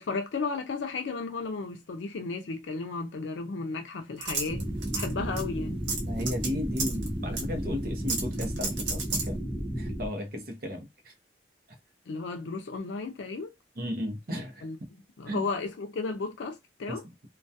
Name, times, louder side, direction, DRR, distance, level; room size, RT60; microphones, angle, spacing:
voice 1, 0.0-4.6 4.9-5.8 12.1-13.5 14.6-14.8 15.2-17.0, left 4 dB, 85° left, 0.4 m, -34 dB
sound 1, 4.2-5.1 5.4-5.5 5.9-6.5 6.8-7.1 7.4-7.5 8.1-9.3, right 3 dB, 90° right, 0.8 m, -31 dB
sound 2, 4.5-10.1, right 1 dB, ahead, 0.4 m, -33 dB
voice 2, 6.0-9.4 9.8-11.1 13.8-14.7 15.3-15.5 16.9-17.0, left 1 dB, 55° right, 0.7 m, -35 dB
2.2 x 2.2 x 2.6 m
head